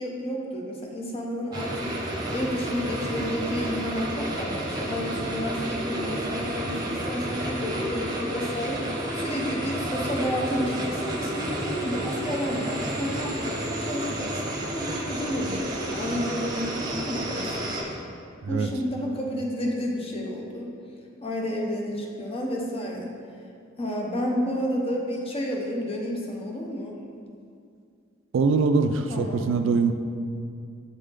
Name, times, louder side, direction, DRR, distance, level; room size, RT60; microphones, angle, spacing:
voice 1, 0.0-1.9 2.3-17.7 18.5-20.7 21.2-23.1 23.8-27.0 29.1-29.4, equal, 30° left, -1 dB, 0.7 m, -31 dB
sound 1, 1.5-17.8, right 1 dB, 20° right, 0.9 m, -31 dB
voice 2, 28.3-29.9, right 4 dB, 70° right, 8 dB, 0.4 m, -23 dB
8.1 x 3.3 x 3.7 m, 2.3 s
head